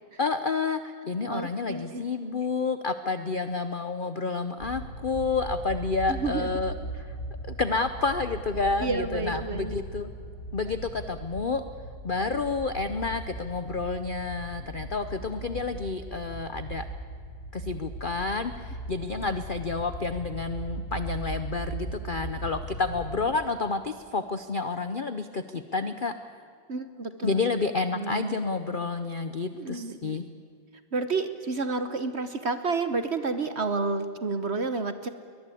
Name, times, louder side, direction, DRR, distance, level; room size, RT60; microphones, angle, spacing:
voice 1, 0.2-7.0 7.5-10.1 10.5-11.7 12.0-16.8 17.5-26.3 27.2-30.2, left 4 dB, 70° left, 10 dB, 0.4 m, -30 dB
voice 2, 1.3-2.0 6.1-6.5 8.8-9.8 26.7-28.4 29.5-30.2 30.9-35.1, right 3 dB, 45° right, 10 dB, 1.0 m, -30 dB
sound 1, 4.6-23.2, right 2 dB, 35° left, 6.2 m, -38 dB
22.5 x 20.0 x 8.5 m, 2.3 s
omnidirectional pair, 2.1 m